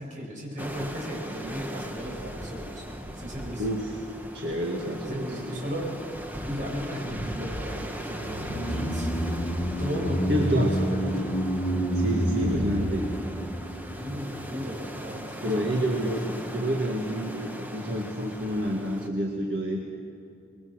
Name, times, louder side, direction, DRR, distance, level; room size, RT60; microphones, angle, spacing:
voice 1, 0.0-2.8 3.1-3.7 5.0-6.0 6.4-9.1 9.8-11.4 12.2-13.0 13.9-16.1, equal, 45° right, -3 dB, 7.1 m, -35 dB
sound 1, 0.6-19.1, equal, 10° right, 1.2 m, -39 dB
voice 2, 3.6-4.0 4.3-5.6 10.3-10.7 11.9-13.0 15.4-19.8, equal, 65° right, 0 dB, 2.0 m, -28 dB
sound 2, 8.1-14.5 14.8-14.9, equal, 40° left, 1.7 m, -29 dB
25.5 x 22.0 x 6.4 m, 2.8 s
head